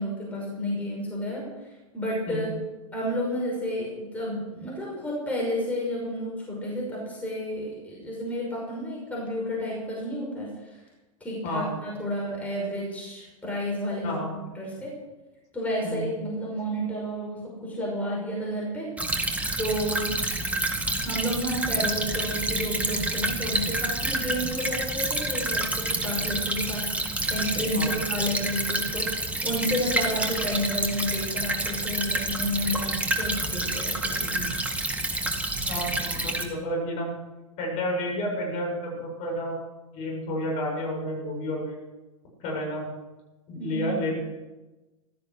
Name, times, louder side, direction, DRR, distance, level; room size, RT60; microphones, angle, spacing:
voice 1, 0.0-2.5 2.9-10.8 11.2-14.9 15.5-20.2 21.0-34.3 43.5-44.0, equal, 10° left, -4 dB, 5.8 m, -31 dB
Stream / Trickle dribble, 19.0-36.4, right 2 dB, 10° right, 1.8 m, -28 dB
voice 2, 35.7-37.1 37.6-39.6 39.9-41.8 42.4-42.9 43.5-44.2, left 1 dB, 40° left, -1 dB, 7.5 m, -30 dB
16.0 x 13.5 x 6.6 m, 1.1 s
figure-of-eight pair, 95°, 18 cm